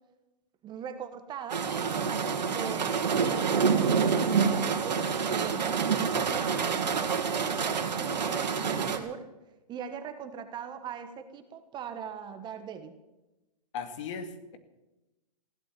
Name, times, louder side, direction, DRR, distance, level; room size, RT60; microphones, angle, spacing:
voice 1, 0.6-1.7 2.5-4.1 4.4-9.2 9.7-12.9, right 7 dB, 20° right, 8 dB, 1.4 m, -41 dB
sound 1, 1.5-9.0, right 6 dB, 85° right, 2.3 m, -27 dB
voice 2, 13.7-14.6, left 5 dB, 45° left, 9 dB, 2.2 m, -37 dB
16.0 x 11.0 x 7.5 m, 0.99 s
hypercardioid pair, 140°, 21 cm